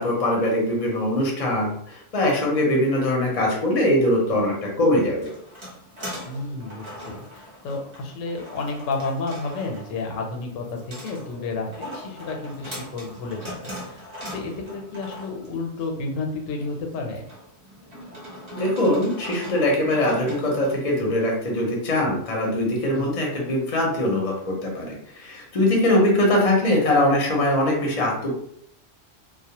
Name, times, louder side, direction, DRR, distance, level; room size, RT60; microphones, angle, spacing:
voice 1, 0.0-5.3 18.5-28.3, left 1 dB, 45° left, -2 dB, 0.5 m, -22 dB
sound 1, 4.9-20.7, equal, 30° right, 0.7 m, -41 dB
voice 2, 6.3-17.2 22.9-23.2, left 3 dB, 90° left, 2 dB, 1.0 m, -31 dB
2.3 x 2.0 x 2.8 m, 0.72 s
omnidirectional pair, 1.3 m